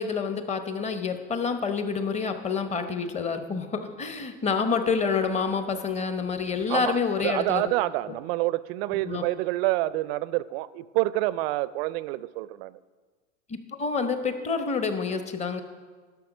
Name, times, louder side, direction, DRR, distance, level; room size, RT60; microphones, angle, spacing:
voice 1, 0.0-7.7 9.0-9.2 13.5-15.6, left 5 dB, 20° left, 8 dB, 0.9 m, -28 dB
voice 2, 6.7-12.8, right 17 dB, 55° right, 18 dB, 0.5 m, -28 dB
11.5 x 6.0 x 6.0 m, 1.4 s
hypercardioid pair, 115°, 36 cm